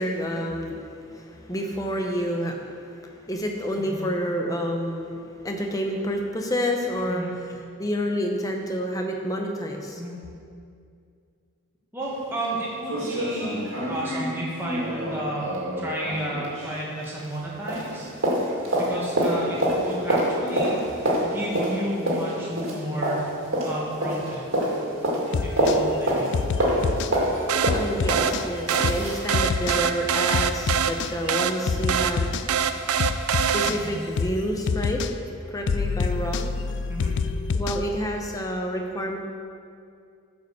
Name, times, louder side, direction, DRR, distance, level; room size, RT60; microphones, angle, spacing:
voice 1, 0.0-10.0 27.7-35.1 35.5-36.5 37.5-39.2, equal, 15° left, 2 dB, 0.8 m, -29 dB
voice 2, 11.9-13.6 13.9-15.5 15.8-18.1 18.7-23.2 23.6-24.4 25.4-26.3 33.6-33.9 36.9-37.1, right 1 dB, 10° right, -6 dB, 1.6 m, -32 dB
sound 1, 12.0-12.1 12.4-12.5 12.9-17.4 17.7-29.3 29.7-29.8, right 1 dB, 60° right, 2.1 m, -27 dB
sound 2, 25.3-25.8 26.3-27.1 27.7-28.5 28.8-29.0 29.3-29.8 30.3-31.1 31.7-32.5 33.0-33.8 34.2-34.4 34.7-35.1 35.7-37.9, left 5 dB, 50° left, 0.3 m, -26 dB
sound 3, 27.5-34.1, right 7 dB, 80° right, 0.5 m, -25 dB
9.9 x 5.3 x 6.8 m, 2.3 s
head